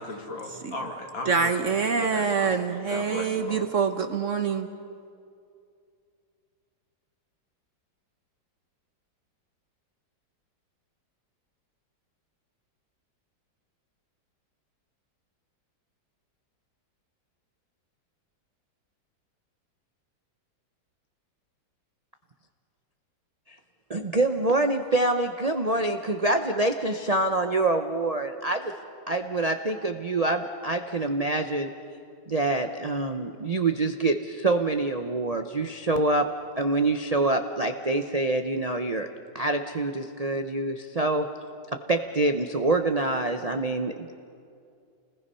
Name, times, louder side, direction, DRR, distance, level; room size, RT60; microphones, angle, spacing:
voice 1, 0.0-3.6, left 2 dB, 85° left, 3.3 m, -37 dB
voice 2, 1.3-4.7, right 6 dB, 50° right, 1.0 m, -25 dB
voice 3, 23.9-28.7 29.1-31.7 32.3-36.3 36.6-39.1 39.3-41.3 41.9-44.2, right 2 dB, 75° right, 0.3 m, -26 dB
29.0 x 20.5 x 5.6 m
omnidirectional pair, 2.1 m